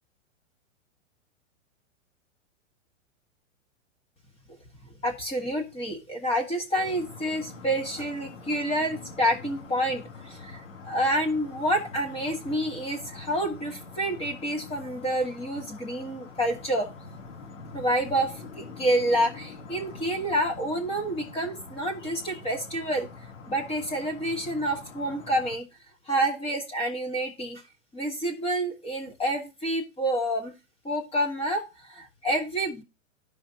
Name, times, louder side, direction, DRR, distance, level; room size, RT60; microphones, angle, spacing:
voice 1, 5.0-16.9 17.7-23.1 23.5-25.6 26.1-27.6 27.9-30.5 30.8-32.8, right 1 dB, 15° left, 3 dB, 1.2 m, -28 dB
sound 1, 6.8-25.6, left 4 dB, 70° left, 2.7 m, -45 dB
13.0 x 5.1 x 2.7 m, 0.27 s
hypercardioid pair, 125°, 39 cm